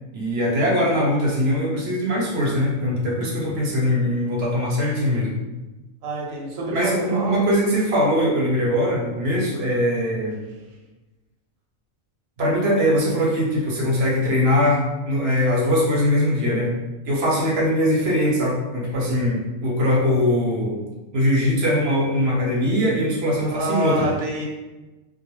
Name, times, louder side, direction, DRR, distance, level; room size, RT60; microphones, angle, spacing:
voice 1, 0.1-5.3 6.7-10.4 12.4-16.8 17.1-20.8 21.1-24.1, equal, 60° right, -3 dB, 0.8 m, -21 dB
voice 2, 6.0-7.4 8.0-8.1 23.6-24.5, right 1 dB, 85° right, -2 dB, 1.0 m, -27 dB
2.4 x 2.1 x 2.9 m, 1.1 s
omnidirectional pair, 1.4 m